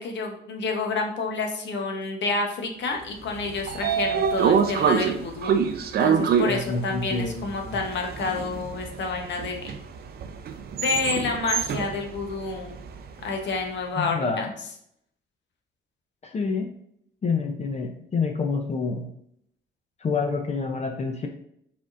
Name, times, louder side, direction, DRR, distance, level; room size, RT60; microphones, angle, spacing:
voice 1, 0.0-5.5 6.0-9.7 10.8-12.8 13.2-14.5, left 4 dB, 65° left, 2 dB, 0.9 m, -29 dB
Train / Sliding door, 3.2-13.4, right 7 dB, 50° right, 0.5 m, -26 dB
voice 2, 6.5-7.8 14.0-14.5 16.2-16.7 17.2-19.1 20.0-21.3, left 4 dB, 35° left, 3 dB, 0.5 m, -28 dB
4.9 x 3.5 x 2.5 m, 0.71 s
cardioid pair, 90°, 20 cm